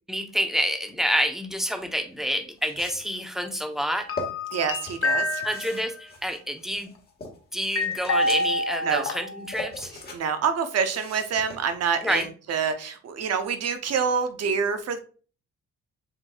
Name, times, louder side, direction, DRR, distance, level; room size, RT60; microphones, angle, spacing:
voice 1, 0.1-4.1 5.4-6.9 7.5-9.9 12.0-12.3, equal, ahead, 5 dB, 0.7 m, -28 dB
sound 1, 1.9-2.0 2.6-3.2 3.8-4.3 4.9-7.4 7.8-8.7 9.2-10.2 10.5-12.2, left 2 dB, 30° left, 1.6 m, -40 dB
sound 2, 4.1-6.0 7.8-9.5 9.8-9.9, left 2 dB, 50° left, 0.8 m, -27 dB
voice 2, 4.5-5.4 8.8-9.1 10.1-15.0, right 6 dB, 55° right, 8 dB, 0.7 m, -26 dB
7.4 x 2.6 x 2.3 m, 0.38 s
cardioid pair, 90°, 30 cm